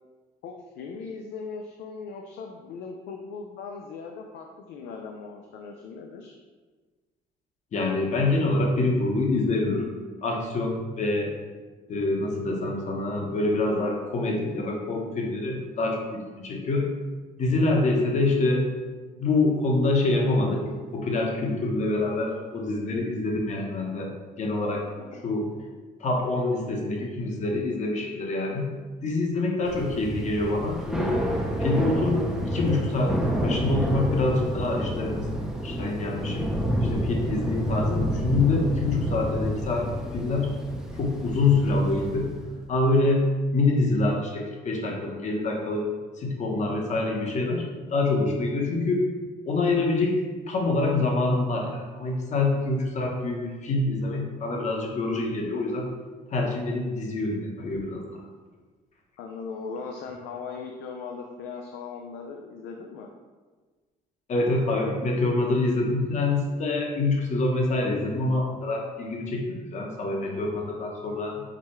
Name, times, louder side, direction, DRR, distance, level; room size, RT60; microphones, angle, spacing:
voice 1, 0.4-6.3 25.1-25.2 29.6-29.7 59.2-63.1 70.2-70.5, left 5 dB, 85° left, 2 dB, 0.4 m, -39 dB
voice 2, 7.7-9.9 10.2-11.3 11.9-16.9 17.4-18.7 19.2-20.6 20.9-24.1 24.4-24.8 25.2-25.5 26.0-28.7 29.0-31.1 31.6-33.2 33.4-36.5 36.8-39.9 40.1-40.5 40.9-42.3 42.7-43.3 43.5-45.9 46.2-49.0 49.5-50.2 50.5-55.9 56.3-58.0 64.3-71.4, left 2 dB, 45° left, 0 dB, 0.9 m, -26 dB
Thunder / Rain, 29.7-42.6, equal, 5° right, 0.6 m, -29 dB
4.8 x 2.3 x 4.3 m, 1.4 s
cardioid pair, 110°, 17 cm